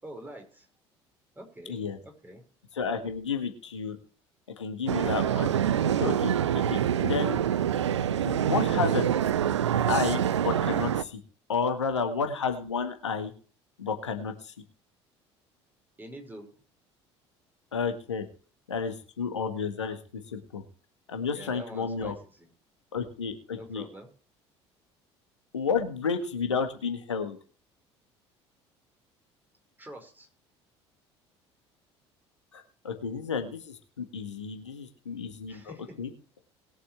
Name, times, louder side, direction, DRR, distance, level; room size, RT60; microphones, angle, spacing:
voice 1, 0.0-0.7 1.4-2.4 16.0-16.5 21.3-22.5 23.5-24.1 29.8-30.3 35.5-36.0, right 1 dB, 15° right, 3 dB, 5.2 m, -46 dB
voice 2, 2.7-4.0 4.6-5.5 6.0-6.3 6.7-7.4 8.2-9.1 9.9-11.2 11.5-13.3 13.8-14.5 17.7-18.2 18.7-20.6 21.1-22.1 22.9-23.8 25.5-27.4 32.5-35.7 36.0-36.1, left 5 dB, 80° left, 6 dB, 1.6 m, -31 dB
sound 1, 4.9-11.0, right 9 dB, 75° right, 0.6 m, -26 dB
20.5 x 8.1 x 3.3 m, 0.39 s
figure-of-eight pair, 60°, 15 cm